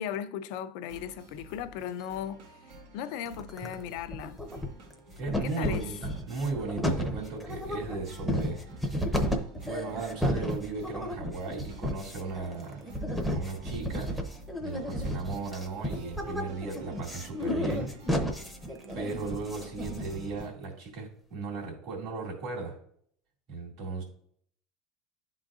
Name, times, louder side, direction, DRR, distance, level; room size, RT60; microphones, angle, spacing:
voice 1, 0.0-2.4 2.9-4.4 5.4-5.9, left 9 dB, 65° left, 0.5 m, -37 dB
sound 1, 0.9-20.5, right 1 dB, 85° right, 1.3 m, -50 dB
sound 2, 3.3-3.8 4.1-4.9 5.3-20.4, equal, ahead, 0.7 m, -32 dB
voice 2, 5.2-9.3 9.6-12.9 13.3-14.1 14.6-17.9 18.9-22.8 23.5-24.0, right 3 dB, 55° right, 2.2 m, -36 dB
11.0 x 3.9 x 2.4 m
cardioid pair, 155°, 0 cm